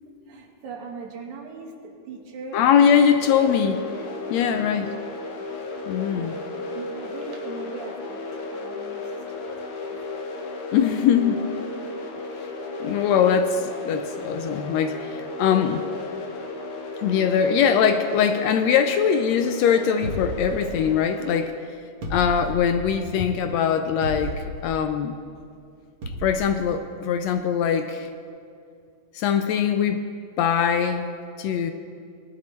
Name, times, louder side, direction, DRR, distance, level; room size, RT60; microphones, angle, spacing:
voice 1, 0.3-3.0 4.3-4.6 6.1-6.5 6.7-10.0, right 4 dB, 80° right, 1 dB, 2.7 m, -40 dB
voice 2, 2.5-3.8 4.3-4.9 5.9-6.4 10.7-11.5 12.8-15.9 17.0-21.5 22.1-25.2 26.2-28.1 29.1-30.1 30.4-31.1 31.4-31.7, left 7 dB, 75° left, 7 dB, 1.7 m, -22 dB
sound 1, 3.2-21.5, left 3 dB, 60° left, 1.8 m, -34 dB
sound 2, 20.0-21.1 22.0-22.9 24.0-24.7 26.0-26.5, equal, 50° right, 2.2 m, -33 dB
19.5 x 11.5 x 3.1 m, 2.3 s
omnidirectional pair, 3.4 m